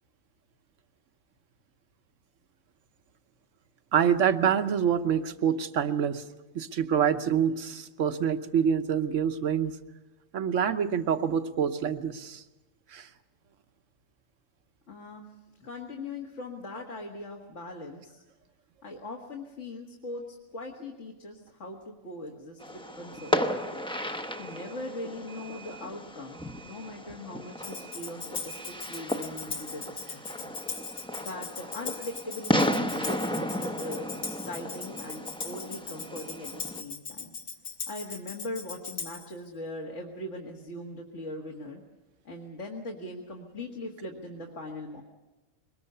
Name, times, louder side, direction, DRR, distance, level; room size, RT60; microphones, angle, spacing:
voice 1, 3.9-6.2 6.5-9.8 10.3-12.4 12.9-13.1 33.0-33.1, right 8 dB, 70° right, 10 dB, 1.3 m, -26 dB
voice 2, 14.9-15.3 15.5-18.2 18.8-23.8 24.4-30.5 31.2-37.3 37.9-41.8 42.2-45.0, left 1 dB, 60° left, 0 dB, 2.1 m, -40 dB
Fireworks, 22.6-36.8, equal, 5° left, 0.6 m, -34 dB
Tambourine, 27.6-39.3, left 4 dB, 90° left, 1.9 m, -39 dB
22.5 x 20.5 x 6.8 m, 1.1 s
omnidirectional pair, 1.4 m